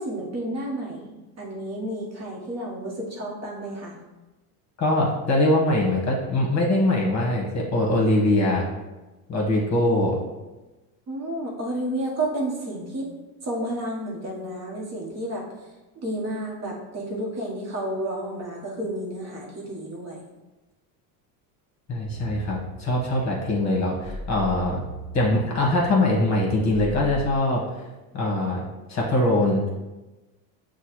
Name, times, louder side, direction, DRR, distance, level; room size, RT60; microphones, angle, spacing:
voice 1, 0.0-4.0 11.1-13.1 13.4-15.5 15.9-20.2, right 1 dB, 30° right, -3 dB, 1.0 m, -31 dB
voice 2, 4.8-8.7 9.3-10.2 21.9-24.8 25.1-27.6 28.1-29.6, left 1 dB, 35° left, -2 dB, 1.3 m, -22 dB
sound 1, 22.0-27.4, equal, 15° right, 1.3 m, -39 dB
6.3 x 2.3 x 3.0 m, 1.1 s
supercardioid pair, 100°, 49 cm